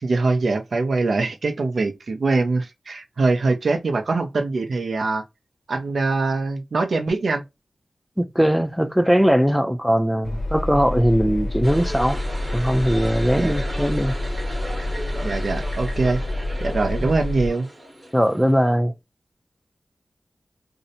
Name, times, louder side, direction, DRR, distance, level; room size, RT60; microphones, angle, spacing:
voice 1, 0.0-5.2 5.7-7.4 13.3-13.6 15.2-16.2 16.6-17.7, right 3 dB, 75° right, 0.5 m, -23 dB
voice 2, 8.2-12.2 12.5-14.1 17.0-17.1 18.1-18.9, equal, ahead, 0.3 m, -20 dB
Engine, 10.2-17.5, left 1 dB, 55° left, 0.7 m, -28 dB
sound 1, 11.6-18.7, right 1 dB, 25° right, 0.8 m, -36 dB
2.6 x 2.1 x 2.6 m
wide cardioid pair, 90°, 0 cm